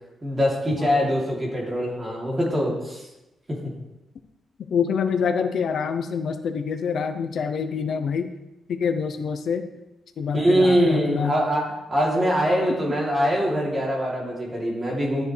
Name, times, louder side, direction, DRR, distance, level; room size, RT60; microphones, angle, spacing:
voice 1, 0.2-3.0 3.5-3.6 10.3-15.2, equal, 20° right, -3 dB, 3.1 m, -23 dB
voice 2, 4.7-8.3 8.7-9.6 10.2-11.4, left 6 dB, 60° left, 8 dB, 0.7 m, -26 dB
13.0 x 9.3 x 3.3 m, 0.96 s
wide cardioid pair, 145°, 0 cm